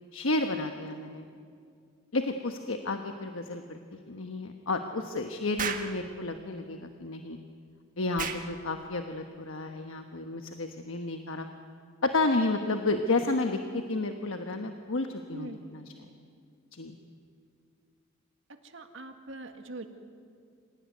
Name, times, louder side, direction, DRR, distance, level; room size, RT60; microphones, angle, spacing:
voice 1, 0.1-1.2 2.1-7.4 8.0-11.5 12.0-15.9 16.7-17.0, left 2 dB, 85° left, 5 dB, 1.2 m, -31 dB
Explosion, 5.6-5.9 8.2-8.5, right 6 dB, 45° right, 1.5 m, -32 dB
voice 2, 18.7-19.9, right 2 dB, 70° right, 6 dB, 1.9 m, -42 dB
26.0 x 17.0 x 9.5 m, 2.3 s
head